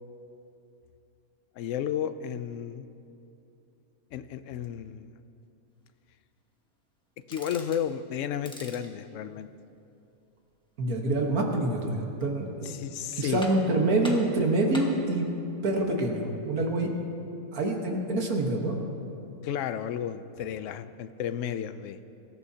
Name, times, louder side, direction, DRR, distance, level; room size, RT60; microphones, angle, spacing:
voice 1, 1.6-2.9 4.1-5.1 7.3-9.5 12.6-13.4 19.4-22.0, left 9 dB, 65° left, 11 dB, 0.9 m, -33 dB
sound 1, 7.2-7.9 8.3-8.9 11.9-12.5 12.9-13.0 13.4-13.8 14.0-15.0, equal, 5° left, 1.3 m, -43 dB
voice 2, 10.8-12.7 13.2-15.3 15.6-16.9 17.5-18.8, right 2 dB, 80° right, 1 dB, 1.9 m, -26 dB
23.5 x 13.5 x 2.8 m, 2.7 s
omnidirectional pair, 1.5 m